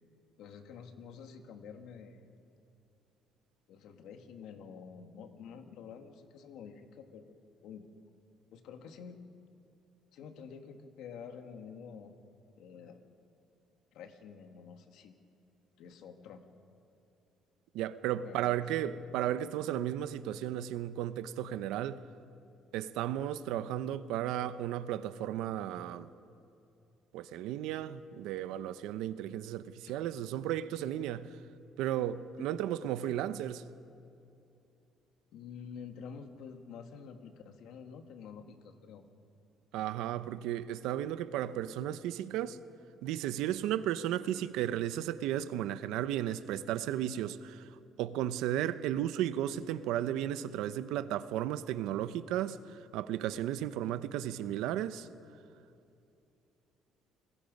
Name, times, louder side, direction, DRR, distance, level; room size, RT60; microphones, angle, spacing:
voice 1, 0.4-2.3 3.7-7.8 8.5-9.2 10.1-12.1 12.6-13.0 13.9-15.1 15.8-16.4 18.2-18.9 35.3-39.1, left 6 dB, 75° left, 1.9 m, -48 dB
voice 2, 17.7-22.0 22.7-26.1 27.1-31.4 31.8-33.6 39.7-42.6 43.0-55.1, right 11 dB, 85° right, 0.8 m, -34 dB
29.0 x 21.5 x 5.4 m
cardioid pair, 130°, 0 cm